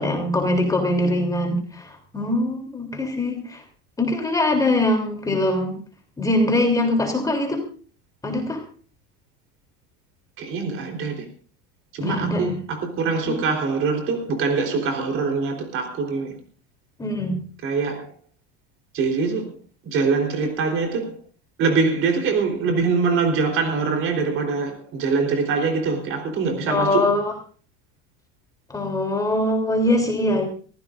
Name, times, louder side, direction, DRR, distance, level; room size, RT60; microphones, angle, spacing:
voice 1, 0.0-3.6 4.0-5.8 6.2-7.6 8.2-8.6 12.0-12.6 13.3-13.4 17.0-17.4 26.7-27.3 28.7-30.5, left 1 dB, 10° left, 3.3 m, -22 dB
voice 2, 10.4-11.3 11.9-16.3 17.6-18.1 18.9-19.5 19.8-21.2 21.6-27.1, right 4 dB, 40° right, 4.0 m, -23 dB
24.0 x 15.5 x 2.6 m
cardioid pair, 160°, 32 cm